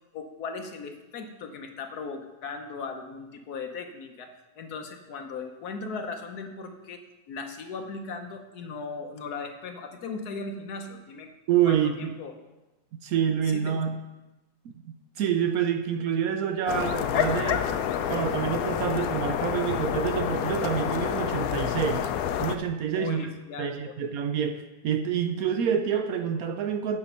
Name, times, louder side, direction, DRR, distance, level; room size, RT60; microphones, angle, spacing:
voice 1, 0.1-4.3 4.6-11.3 11.6-12.3 13.4-13.8 22.9-23.9, left 4 dB, 60° left, 5 dB, 1.3 m, -38 dB
voice 2, 11.5-12.1 13.0-14.0 14.6-17.7 18.1-22.1 22.4-23.3 23.6-27.0, right 8 dB, 70° right, 7 dB, 0.8 m, -27 dB
sound 1, 16.7-22.6, left 9 dB, 75° left, 0.8 m, -28 dB
8.8 x 6.0 x 5.5 m, 1.1 s
omnidirectional pair, 2.0 m